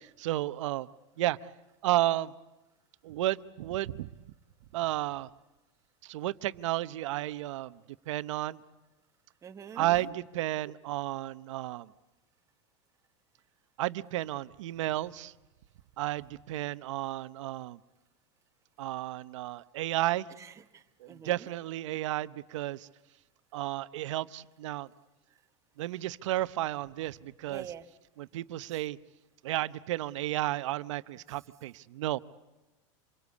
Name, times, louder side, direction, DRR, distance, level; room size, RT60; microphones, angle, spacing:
voice 1, 0.2-0.9 1.2-1.4 1.8-2.3 3.0-4.1 4.7-5.3 6.1-7.8 8.1-8.6 9.8-11.9 13.8-15.3 16.0-17.8 18.8-20.3 21.0-22.9 23.5-24.9 25.8-27.6 28.2-29.0 29.4-32.2, right 15 dB, 80° right, 14 dB, 0.8 m, -32 dB
voice 2, 9.4-9.9 20.4-21.5 27.5-27.9, right 8 dB, 20° right, 7 dB, 1.1 m, -46 dB
27.0 x 22.5 x 8.4 m, 1.1 s
supercardioid pair, 150°, 15 cm